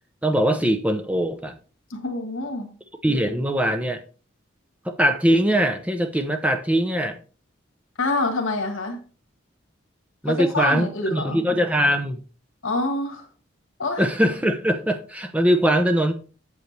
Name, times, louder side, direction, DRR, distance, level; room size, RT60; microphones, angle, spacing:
voice 1, 0.2-1.6 3.0-4.0 4.8-7.2 10.2-12.2 14.0-16.1, equal, 5° right, 7 dB, 0.8 m, -21 dB
voice 2, 1.9-2.7 8.0-9.0 10.2-11.4 12.6-13.3 13.8-14.0, left 2 dB, 90° left, 3 dB, 1.6 m, -26 dB
8.0 x 7.9 x 3.3 m, 0.36 s
head